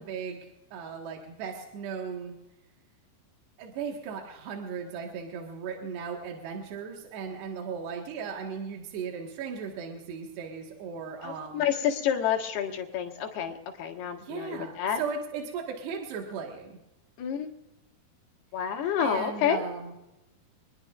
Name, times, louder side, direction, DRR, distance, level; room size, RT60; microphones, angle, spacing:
voice 1, 0.0-2.3 3.6-11.6 14.2-16.7 19.0-19.9, right 6 dB, 75° right, 0 dB, 3.7 m, -37 dB
voice 2, 11.2-15.0 17.2-17.5 18.5-19.6, left 8 dB, 70° left, 2 dB, 3.6 m, -29 dB
26.5 x 20.5 x 2.5 m, 0.97 s
omnidirectional pair, 4.9 m